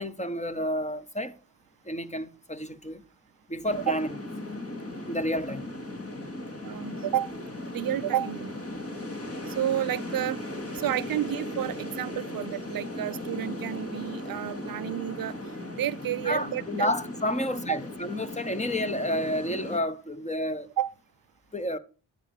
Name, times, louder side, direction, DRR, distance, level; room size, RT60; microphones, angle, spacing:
voice 1, 0.0-1.3 1.8-3.0 3.5-4.1 5.1-5.7 16.2-20.7 21.5-21.8, left 1 dB, 20° left, 1.2 m, -30 dB
sound 1, 3.6-19.8, left 1 dB, 35° left, 2.5 m, -37 dB
voice 2, 6.6-7.3 7.7-8.5 9.5-10.4 10.7-15.4 15.8-16.9 17.7-17.8 20.8-20.9, right 12 dB, 60° right, 0.5 m, -30 dB
9.8 x 9.0 x 3.4 m
cardioid pair, 55°, 39 cm